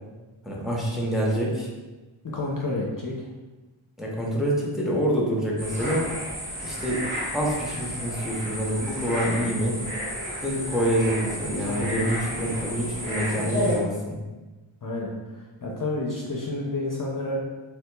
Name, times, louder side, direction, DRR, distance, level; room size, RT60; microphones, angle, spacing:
voice 1, 0.4-1.7 4.0-6.1 6.6-7.0 7.3-9.8 10.4-14.2, equal, ahead, -3 dB, 0.6 m, -26 dB
voice 2, 2.2-3.3 11.7-11.9 14.8-17.4, left 2 dB, 45° left, -3 dB, 0.5 m, -30 dB
sound 1, 5.6-13.8, equal, 85° right, 1.2 m, -32 dB
3.5 x 2.8 x 2.2 m, 1.2 s
wide cardioid pair, 65°, 48 cm